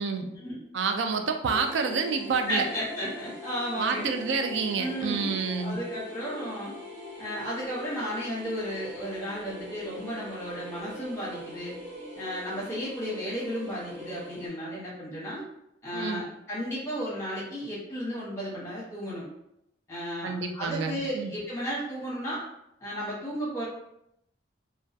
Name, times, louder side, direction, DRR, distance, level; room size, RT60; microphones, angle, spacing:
voice 1, 0.7-2.6 3.8-5.8 15.9-16.2 20.2-21.3, right 5 dB, 70° right, 5 dB, 0.3 m, -28 dB
sound 1, 1.4-14.5, left 1 dB, 35° right, 1.1 m, -42 dB
voice 2, 2.5-4.1 4.8-6.7 7.2-11.7 12.2-15.4 15.8-19.3 19.9-22.4 22.8-23.6, equal, 15° left, -7 dB, 0.9 m, -34 dB
2.3 x 2.2 x 2.6 m, 0.81 s
head